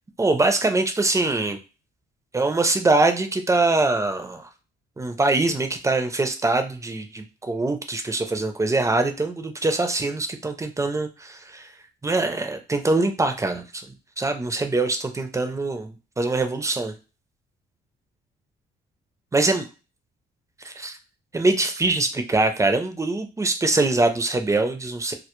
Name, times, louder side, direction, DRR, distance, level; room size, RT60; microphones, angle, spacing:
voice 1, 0.2-1.6 2.3-4.5 5.0-11.7 12.0-13.9 14.2-16.9 19.3-19.7 20.6-21.0 21.3-25.1, right 2 dB, 15° right, 7 dB, 0.4 m, -23 dB
2.1 x 2.0 x 2.9 m, 0.32 s
cardioid pair, 90°, 20 cm